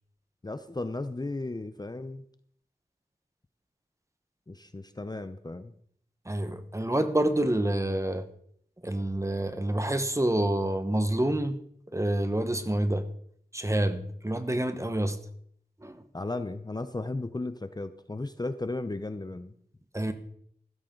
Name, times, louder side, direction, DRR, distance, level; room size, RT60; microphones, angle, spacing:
voice 1, 0.4-2.2 4.5-5.7 16.1-19.5, left 2 dB, 25° left, 11 dB, 0.7 m, -35 dB
voice 2, 6.3-8.3 8.8-11.6 11.9-13.1 13.5-15.2 15.8-16.0 19.9-20.1, right 1 dB, 20° right, 9 dB, 1.2 m, -27 dB
15.0 x 13.0 x 3.8 m, 0.65 s
wide cardioid pair, 90°, 17 cm